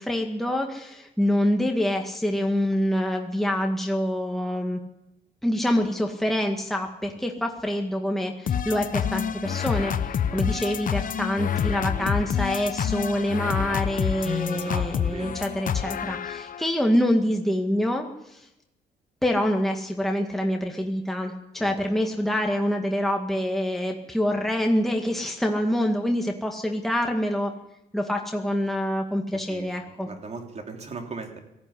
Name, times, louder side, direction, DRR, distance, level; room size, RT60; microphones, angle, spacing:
voice 1, 0.0-4.8 5.4-18.5 19.2-27.5 27.9-30.1, equal, ahead, 2 dB, 2.0 m, -26 dB
sound 1, 8.5-16.7, left 8 dB, 55° left, 1.1 m, -28 dB
voice 2, 12.0-12.3 14.5-15.4 21.6-21.7 29.3-29.7 30.0-31.4, right 4 dB, 40° right, 4 dB, 3.5 m, -38 dB
18.5 x 14.5 x 9.8 m, 0.87 s
cardioid pair, 95°, 17 cm